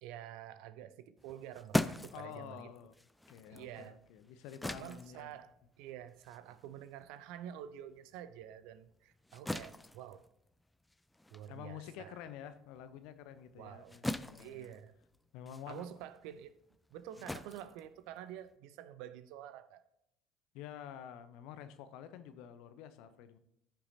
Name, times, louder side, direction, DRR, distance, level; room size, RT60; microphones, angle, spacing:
voice 1, 0.0-2.7 3.5-4.0 4.7-10.3 11.3-12.2 13.6-14.0 14.4-15.0 15.7-16.6 16.9-19.8, right 11 dB, 60° right, 0.5 m, -48 dB
sound 1, 1.2-8.0 8.4-18.6, left 1 dB, 10° left, 0.5 m, -42 dB
voice 2, 2.1-2.9 3.3-5.3 11.5-14.7 15.3-15.8 20.5-23.4, left 9 dB, 60° left, 0.7 m, -49 dB
15.0 x 5.7 x 2.7 m
figure-of-eight pair, 60°, 0 cm